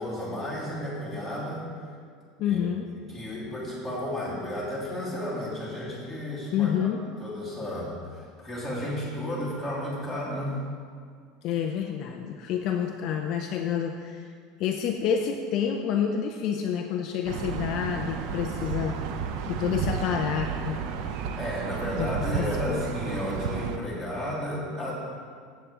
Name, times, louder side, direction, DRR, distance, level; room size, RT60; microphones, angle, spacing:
voice 1, 0.0-1.6 2.4-2.6 3.0-6.9 7.2-10.6 21.3-24.9, equal, 5° right, -8 dB, 2.9 m, -33 dB
voice 2, 2.4-2.9 6.5-7.0 11.4-14.3 14.6-19.0 19.5-20.8 21.9-22.8, left 8 dB, 40° left, 4 dB, 0.5 m, -28 dB
sound 1, 17.3-23.8, right 6 dB, 50° right, 0.7 m, -32 dB
14.5 x 8.3 x 3.7 m, 2.1 s
supercardioid pair, 175°, 0 cm